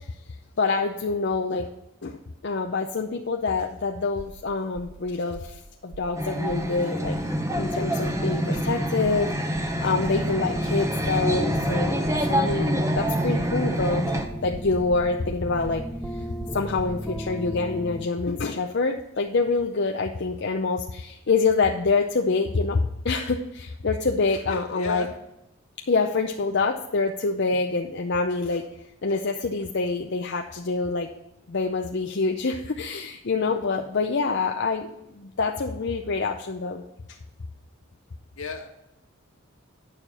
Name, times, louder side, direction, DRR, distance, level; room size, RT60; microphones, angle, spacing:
voice 1, 0.6-1.7 2.0-5.5 5.8-7.2 7.6-14.1 14.4-15.8 16.5-25.0 25.9-28.7 29.0-31.1 31.5-36.8, left 4 dB, 55° left, 2 dB, 0.6 m, -26 dB
sound 1, 4.2-4.4 4.7-5.0 5.3-5.6 5.9-6.2 6.5-6.7 7.0-7.3 7.5-7.8 8.0-8.3 8.5-8.8 9.0-9.3 9.5-9.8 10.0-10.3 10.5-10.8 11.0-11.3 11.5-11.8 12.0-17.4, right 3 dB, 80° right, 0.9 m, -41 dB
sound 2, 6.2-14.3, equal, 15° right, 0.8 m, -26 dB
sound 3, 6.9-18.1, equal, ahead, 0.3 m, -35 dB
voice 2, 24.5-25.1 38.4-38.7, left 4 dB, 75° left, 2 dB, 1.7 m, -33 dB
9.0 x 6.5 x 4.2 m, 0.85 s
head